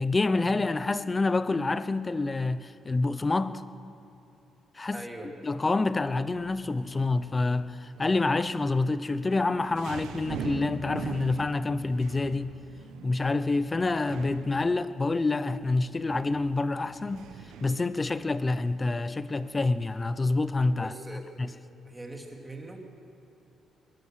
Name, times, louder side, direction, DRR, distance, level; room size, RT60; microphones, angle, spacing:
voice 1, 0.0-3.6 4.8-5.1 5.4-12.5 13.0-17.3 17.6-20.9 21.4-21.5, left 3 dB, 25° left, 14 dB, 0.8 m, -27 dB
voice 2, 4.9-5.3 20.7-21.3 21.8-22.8, right 2 dB, 15° right, 1 dB, 3.2 m, -41 dB
sound 1, 6.3-20.2, right 7 dB, 85° right, 1.4 m, -44 dB
21.0 x 20.5 x 6.6 m, 2.9 s
cardioid pair, 90°, 0 cm